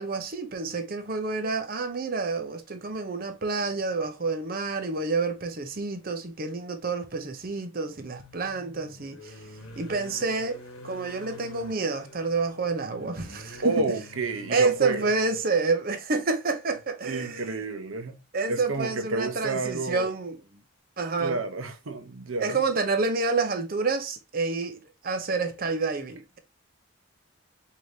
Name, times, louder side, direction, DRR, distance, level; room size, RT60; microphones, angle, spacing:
voice 1, 0.0-9.4 9.8-13.9 14.5-17.6 18.3-20.4 21.0-21.4 22.4-26.4, right 4 dB, 45° right, 0.6 m, -28 dB
sound 1, 5.5-5.6 7.8-15.5 16.7-16.8 17.2-17.3, left 1 dB, 85° left, 1.0 m, -47 dB
voice 2, 13.6-15.1 17.0-18.2 18.5-20.1 21.2-22.6, right 3 dB, 75° right, 0.8 m, -30 dB
4.8 x 2.8 x 2.6 m
head